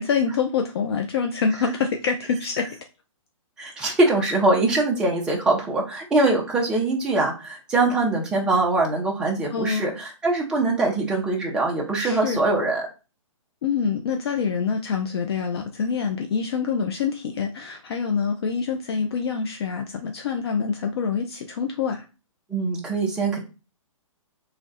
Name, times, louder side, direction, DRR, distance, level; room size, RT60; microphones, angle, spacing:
voice 1, 0.0-2.7 9.5-9.9 12.0-12.4 13.6-22.0, left 6 dB, 50° left, 4 dB, 0.4 m, -26 dB
voice 2, 3.6-12.9 22.5-23.4, right 2 dB, 5° right, -2 dB, 0.5 m, -23 dB
3.1 x 2.5 x 3.9 m, 0.31 s
hypercardioid pair, 160°, 17 cm